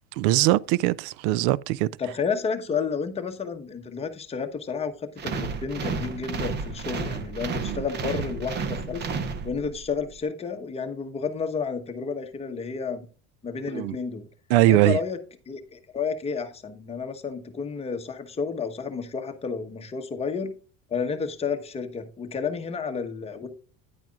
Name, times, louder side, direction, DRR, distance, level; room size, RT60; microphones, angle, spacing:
voice 1, 0.2-1.9 7.6-7.8 13.7-14.0 14.5-15.0, right 16 dB, 80° right, 0.5 m, -21 dB
voice 2, 2.0-9.1 9.4-13.1 13.4-14.3 14.7-15.2 15.5-20.5 20.9-23.5, left 5 dB, 20° left, 1.1 m, -31 dB
sound 1, 5.2-9.9, right 5 dB, 30° right, 1.0 m, -32 dB
9.9 x 9.0 x 2.4 m
cardioid pair, 155°, 32 cm